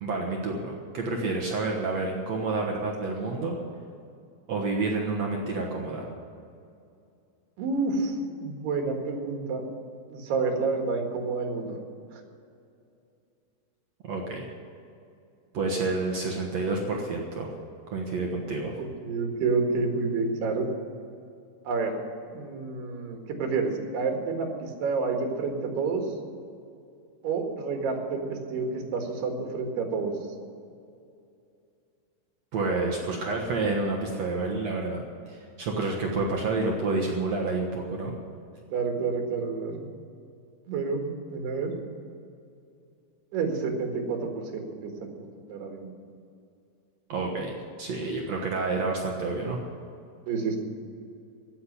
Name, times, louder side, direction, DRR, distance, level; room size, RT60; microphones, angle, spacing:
voice 1, 0.0-3.6 4.5-6.1 14.0-14.5 15.5-17.5 17.9-18.7 32.5-38.2 47.1-49.6, right 3 dB, 60° right, 0 dB, 1.9 m, -29 dB
voice 2, 7.6-9.7 10.1-11.7 12.1-12.2 18.8-20.7 21.7-21.9 22.3-26.1 27.2-30.2 38.7-39.9 40.7-41.7 43.3-45.9 50.3-50.6, right 4 dB, 80° right, 3 dB, 3.8 m, -29 dB
16.0 x 7.3 x 9.8 m, 2.5 s
omnidirectional pair, 4.6 m